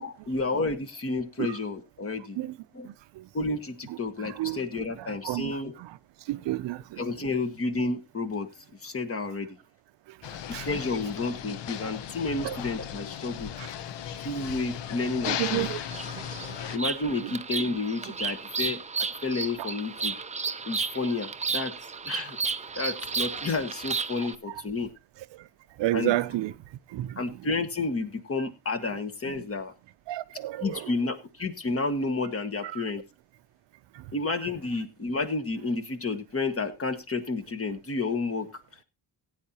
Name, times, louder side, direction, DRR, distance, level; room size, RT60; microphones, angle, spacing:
voice 1, 0.0-2.4 2.7-2.9 3.3-5.7 7.0-8.5 8.8-9.6 10.7-13.5 14.2-15.7 16.7-20.2 20.7-21.7 22.0-22.4 22.8-24.9 25.9-26.1 27.2-29.7 30.6-33.0 34.1-38.5, left 3 dB, 30° left, 1.4 m, -31 dB
voice 2, 2.9-3.2 4.2-4.6 5.0-6.0 6.3-7.0 10.5-10.7 12.4-12.6 13.6-13.7 15.3-15.8 17.2-17.3 19.6-19.7 25.8-26.5 26.9-27.2 29.2-29.3 30.1-30.9 32.6-32.9, right 16 dB, 75° right, 0.6 m, -31 dB
sound 1, 10.2-16.8, left 10 dB, 70° left, 0.9 m, -36 dB
Bird vocalization bird call bird song, 15.8-24.4, right 5 dB, 15° right, 0.5 m, -33 dB
16.5 x 9.2 x 2.8 m
cardioid pair, 120°, 43 cm